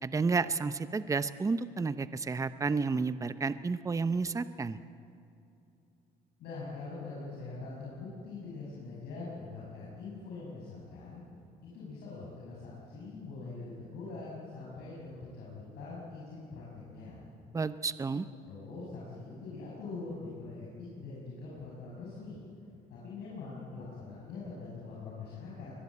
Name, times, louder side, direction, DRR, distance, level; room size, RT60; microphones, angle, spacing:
voice 1, 0.0-4.8 17.5-18.3, right 4 dB, 20° right, 13 dB, 0.7 m, -31 dB
voice 2, 6.4-11.2 11.6-17.2 18.4-22.4 22.9-25.7, left 3 dB, 75° left, -6 dB, 6.3 m, -43 dB
23.0 x 21.5 x 8.5 m, 2.6 s
cardioid pair, 110°, 17 cm